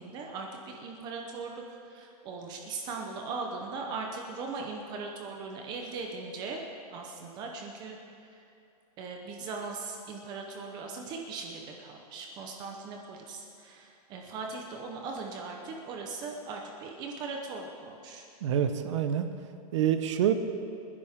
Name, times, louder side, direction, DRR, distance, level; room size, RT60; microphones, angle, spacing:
voice 1, 0.0-6.6 6.9-8.0 8.3-8.4 9.0-18.2, right 4 dB, 20° right, 1 dB, 0.9 m, -39 dB
voice 2, 18.4-19.3 19.7-20.3, right 9 dB, 50° right, 8 dB, 1.0 m, -26 dB
27.0 x 10.5 x 3.7 m, 2.6 s
supercardioid pair, 175°, 20 cm